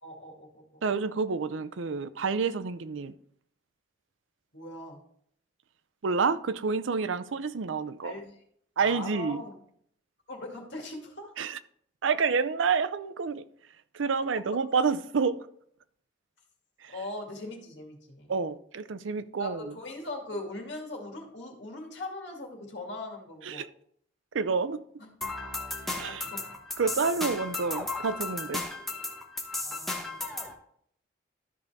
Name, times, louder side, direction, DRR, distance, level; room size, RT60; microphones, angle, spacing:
voice 1, 0.0-0.6 4.5-5.0 8.0-8.4 8.8-9.6 10.3-11.3 16.9-18.3 19.4-23.6 25.0-25.1 25.9-26.4 29.6-30.1, left 2 dB, 70° left, 2.2 m, -40 dB
voice 2, 0.8-3.1 6.0-8.1 8.8-9.4 11.4-11.6 12.0-13.4 13.9-15.4 16.8-16.9 18.3-19.6 23.4-23.7 24.3-24.8 26.0-26.3 26.8-28.6, right 5 dB, 85° right, 0.5 m, -28 dB
sound 1, 25.2-30.5, left 2 dB, ahead, 1.0 m, -35 dB
13.0 x 5.3 x 3.5 m
head